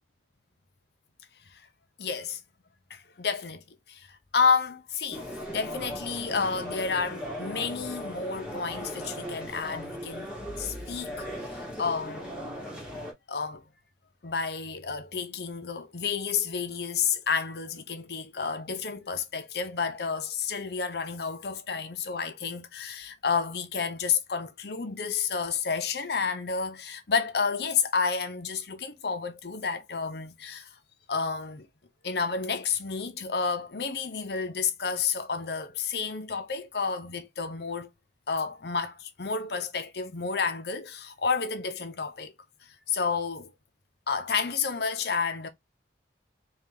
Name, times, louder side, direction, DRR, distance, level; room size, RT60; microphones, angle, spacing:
voice 1, 2.0-2.4 2.9-10.3 10.6-12.3 13.3-13.6 14.2-30.8 31.1-31.7 32.0-37.9 38.3-42.3 42.6-43.5 44.1-45.5, left 5 dB, 65° left, 0.7 m, -30 dB
sound 1, 5.1-13.1, equal, 5° right, 1.2 m, -38 dB
4.0 x 2.4 x 3.8 m
head